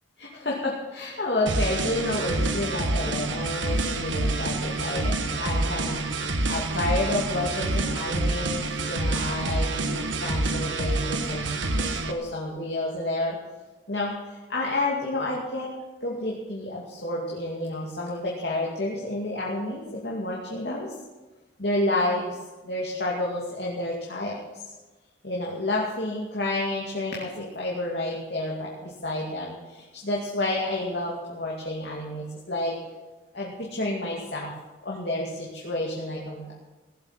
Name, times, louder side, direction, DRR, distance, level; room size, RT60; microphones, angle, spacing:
voice 1, 0.2-13.4 13.9-15.7 16.0-20.9 21.6-22.4 22.6-24.4 25.2-32.8 33.3-34.5 34.8-36.5, left 2 dB, 60° left, -3 dB, 2.5 m, -30 dB
sound 1, 1.5-12.1, right 2 dB, 80° right, 1.3 m, -27 dB
17.0 x 7.9 x 7.5 m, 1.2 s
head